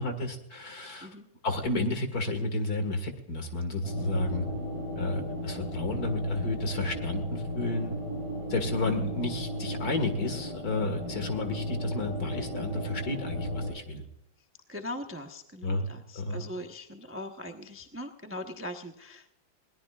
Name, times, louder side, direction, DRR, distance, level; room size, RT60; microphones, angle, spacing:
voice 1, 0.0-1.1 1.4-4.5 5.0-8.0 8.5-14.0 15.6-15.9 16.1-16.5, left 2 dB, 45° left, 7 dB, 2.3 m, -31 dB
sound 1, 3.8-13.7, equal, 65° left, 5.4 m, -35 dB
voice 2, 14.7-19.3, left 1 dB, 15° right, 4 dB, 0.5 m, -40 dB
21.5 x 18.0 x 2.4 m, 0.81 s
omnidirectional pair, 2.3 m